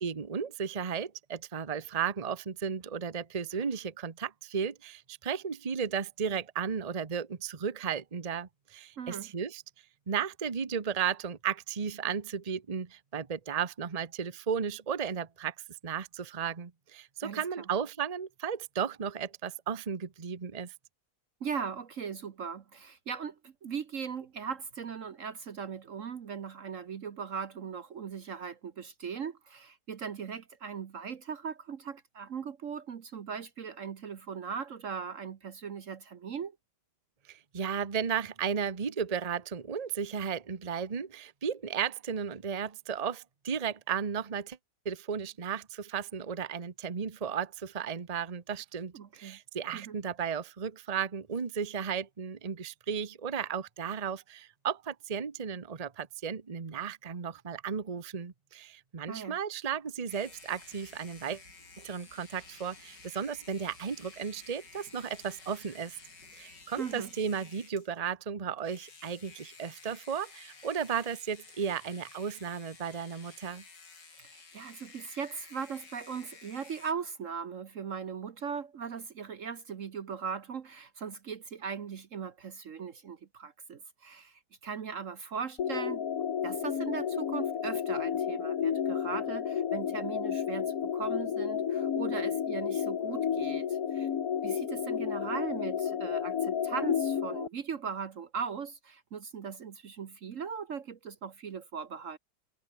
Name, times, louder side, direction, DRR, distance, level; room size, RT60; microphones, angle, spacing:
voice 1, 0.0-9.6 10.1-15.5 15.8-20.7 37.3-44.6 44.8-61.4 61.8-66.0 66.3-73.6, right 7 dB, 25° right, 1.0 m, -34 dB
voice 2, 9.0-9.3 17.2-17.7 21.4-36.6 48.9-49.4 49.7-50.0 59.1-59.4 66.8-67.1 74.2-86.0 86.4-94.1 94.4-102.2, right 6 dB, 50° right, 1.2 m, -39 dB
sound 1, 60.1-67.9 68.6-76.9, left 4 dB, 80° left, 4.0 m, -53 dB
sound 2, 60.2-67.3, right 2 dB, 80° right, 7.9 m, -63 dB
sound 3, 85.6-97.5, left 8 dB, 55° left, 1.6 m, -31 dB
omnidirectional pair, 1.9 m